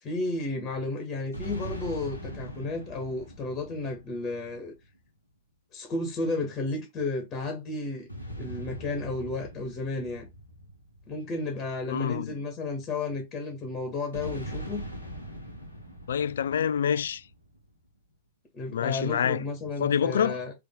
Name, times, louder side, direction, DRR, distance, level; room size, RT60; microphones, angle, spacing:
voice 1, 0.0-4.7 5.7-8.1 8.4-10.3 11.1-14.8 18.5-20.5, left 2 dB, 30° left, 1.4 m, -33 dB
sound 1, 1.3-5.0 8.1-11.8 14.1-17.6, equal, 90° left, 1.2 m, -41 dB
voice 2, 11.9-12.4 16.1-17.2 18.7-19.5 19.8-20.4, left 8 dB, 65° left, 0.3 m, -27 dB
3.6 x 3.3 x 3.7 m
figure-of-eight pair, 90°, 0 cm